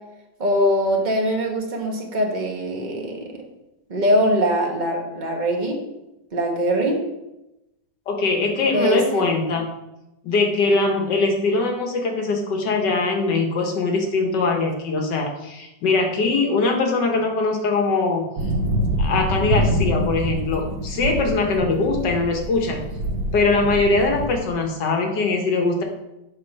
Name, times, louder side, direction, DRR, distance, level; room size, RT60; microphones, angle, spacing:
voice 1, 0.4-3.4 3.9-5.8 6.3-7.0 8.7-9.3, equal, 30° right, 1 dB, 1.1 m, -22 dB
voice 2, 8.1-9.7 10.2-18.3 19.0-22.8 23.3-25.8, left 3 dB, 75° left, 2 dB, 1.8 m, -22 dB
sound 1, 18.4-24.4, right 1 dB, 85° right, 1.6 m, -25 dB
8.8 x 3.6 x 5.8 m, 0.94 s
omnidirectional pair, 1.9 m